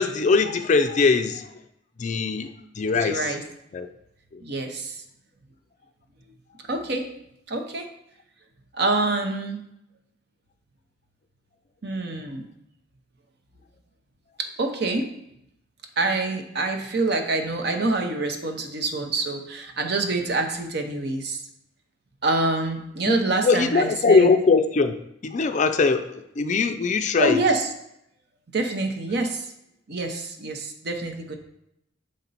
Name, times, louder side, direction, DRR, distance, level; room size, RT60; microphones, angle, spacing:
voice 1, 0.0-1.6 2.0-2.5 2.8-3.4 3.7-3.9 4.3-4.4 23.1-24.9 25.2-27.4, left 4 dB, 40° left, 8 dB, 0.4 m, -21 dB
voice 2, 2.9-3.4 4.4-5.0 6.7-7.1 7.5-7.9 8.7-9.6 11.8-12.5 14.4-15.1 16.0-21.4 22.2-24.3 27.2-27.7 28.5-29.5 29.9-31.4, right 2 dB, 55° right, 5 dB, 0.8 m, -26 dB
6.4 x 4.4 x 4.0 m, 0.80 s
head